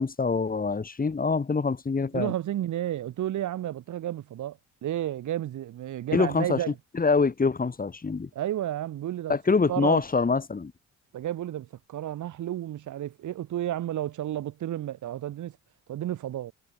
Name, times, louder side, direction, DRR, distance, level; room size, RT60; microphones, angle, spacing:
voice 1, 0.0-2.3 6.1-6.6 6.9-8.3 9.3-10.7, left 4 dB, 30° left, 4.1 m, -25 dB
voice 2, 2.1-6.8 8.3-9.4 9.7-10.0 11.1-15.5 15.9-16.5, right 12 dB, 75° right, 5.7 m, -32 dB
cardioid pair, 90°, 30 cm